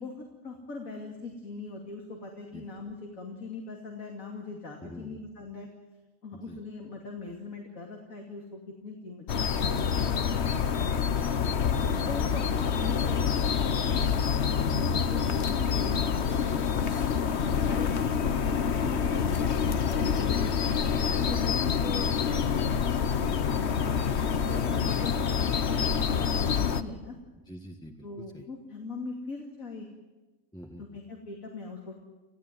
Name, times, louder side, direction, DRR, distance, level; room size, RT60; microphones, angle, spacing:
voice 1, 0.0-5.7 6.2-10.1 11.6-17.4 17.6-18.1 18.4-24.1 24.5-27.2 28.0-29.9 30.8-31.9, left 3 dB, 80° left, 1 dB, 3.1 m, -41 dB
voice 2, 4.8-5.2 6.3-6.6 27.5-28.5 30.5-31.0, equal, 5° left, 1 dB, 1.5 m, -46 dB
sound 1, 9.3-26.8, left 7 dB, 55° left, 1.2 m, -27 dB
28.0 x 16.0 x 9.3 m, 1.2 s
omnidirectional pair, 1.4 m